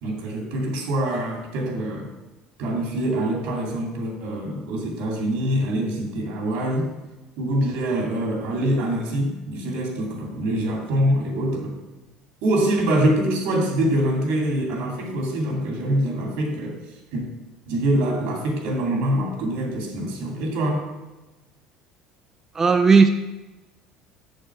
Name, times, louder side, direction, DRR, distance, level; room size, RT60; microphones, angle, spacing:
voice 1, 0.0-2.1 2.6-6.9 7.4-11.8 12.4-17.2 17.7-20.8, right 1 dB, 80° right, 1 dB, 2.4 m, -24 dB
voice 2, 22.5-23.1, right 5 dB, 20° right, 6 dB, 0.4 m, -15 dB
6.8 x 6.6 x 4.7 m, 1.1 s
cardioid pair, 145°, 2 cm